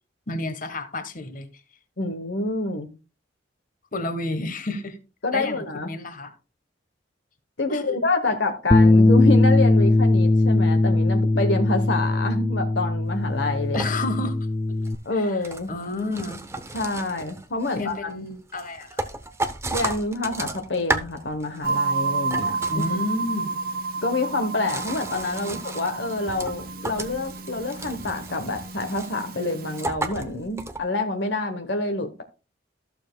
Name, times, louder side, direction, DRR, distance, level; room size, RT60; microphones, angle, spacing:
voice 1, 0.3-1.5 3.9-5.0 5.3-6.3 7.7-8.0 8.3-8.4 13.7-14.4 15.1-16.5 17.7-19.1 22.7-23.6 25.4-25.6, left 2 dB, 45° left, 1.2 m, -31 dB
voice 2, 2.0-2.9 5.2-5.9 7.6-13.9 15.0-15.7 16.7-17.9 19.7-23.0 24.0-32.2, left 2 dB, 65° left, 1.0 m, -27 dB
Bass guitar, 8.7-15.0, left 2 dB, 15° left, 0.3 m, -19 dB
sound 1, 13.1-13.2 13.5-14.4 14.8-21.7 22.0-23.3 24.1-30.8, right 2 dB, 15° right, 0.7 m, -34 dB
sound 2, 21.6-29.8, right 4 dB, 50° right, 0.9 m, -31 dB
14.0 x 6.9 x 2.2 m
head